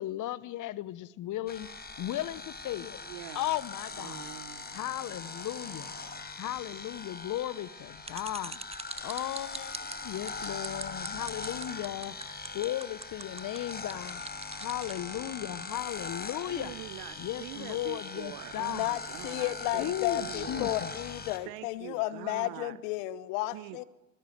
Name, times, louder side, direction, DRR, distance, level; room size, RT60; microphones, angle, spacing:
voice 1, 0.0-1.7 2.0-3.0 3.3-4.3 4.7-5.9 6.4-8.6 9.0-12.2 12.5-14.2 14.6-16.7 17.2-18.9 19.8-20.9, left 14 dB, 50° left, 1.2 m, -36 dB
sound 1, 1.5-21.4, left 3 dB, 25° left, 4.6 m, -41 dB
voice 2, 3.0-3.5 4.0-4.8 16.5-20.8 21.5-22.8 23.5-23.8, right 18 dB, 60° right, 0.9 m, -44 dB
sound 2, 8.0-15.0, right 4 dB, 15° right, 1.4 m, -41 dB
Bowed string instrument, 16.9-21.5, right 9 dB, 75° right, 5.4 m, -63 dB
voice 3, 18.7-23.8, left 17 dB, 65° left, 1.2 m, -33 dB
25.0 x 19.0 x 9.3 m
figure-of-eight pair, 55°, 41 cm